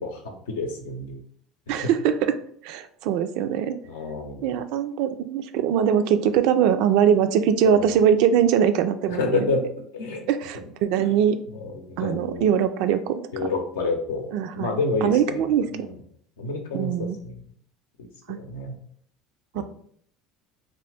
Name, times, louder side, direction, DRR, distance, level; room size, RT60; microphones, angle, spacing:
voice 1, 0.0-1.2 1.7-1.8 3.8-4.6 7.6-7.9 9.1-10.3 11.0-11.1 11.5-12.5 13.3-15.4 15.7-15.9 16.4-17.4 18.0-18.8 19.5-19.6, left 3 dB, 90° left, 3 dB, 0.6 m, -29 dB
voice 2, 1.7-2.1 2.6-3.7 4.4-9.4 10.3-11.4 12.0-13.2 14.3-14.7 15.0-15.7 16.7-17.2 18.3-18.4 19.5-19.6, right 8 dB, 70° right, 10 dB, 0.3 m, -22 dB
2.8 x 2.5 x 3.3 m, 0.63 s
hypercardioid pair, 85°, 0 cm